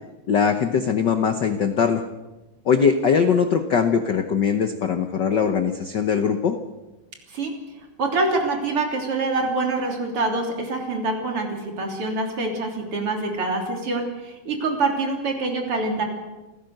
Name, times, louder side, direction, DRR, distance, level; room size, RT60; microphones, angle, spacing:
voice 1, 0.3-2.0 2.6-6.6, left 6 dB, 85° left, 8 dB, 0.9 m, -21 dB
voice 2, 8.0-16.0, right 3 dB, 45° right, 2 dB, 4.0 m, -25 dB
28.5 x 15.0 x 6.6 m, 1.1 s
omnidirectional pair, 3.5 m